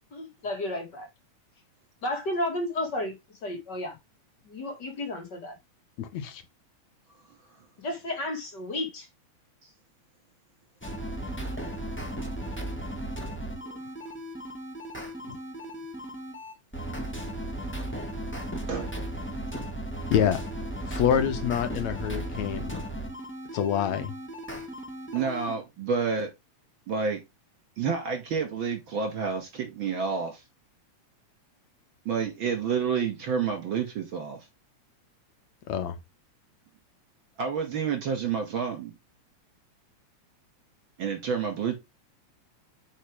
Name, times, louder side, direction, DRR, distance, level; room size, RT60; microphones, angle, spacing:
voice 1, 0.1-1.1 2.0-3.2 3.4-4.0 4.4-5.6 7.8-9.1 15.2-15.3, left 1 dB, 40° left, 2.6 m, -32 dB
voice 2, 6.0-6.4 20.1-20.4 20.9-22.8 23.5-24.1 35.7-35.9, left 9 dB, 75° left, 2.2 m, -26 dB
sound 1, 10.8-25.5, right 1 dB, 5° left, 1.3 m, -36 dB
voice 3, 25.1-26.3 26.9-27.2 27.8-30.4 32.1-34.4 37.4-38.9 41.0-41.8, right 6 dB, 45° right, 2.6 m, -29 dB
9.0 x 5.0 x 3.5 m
omnidirectional pair, 3.3 m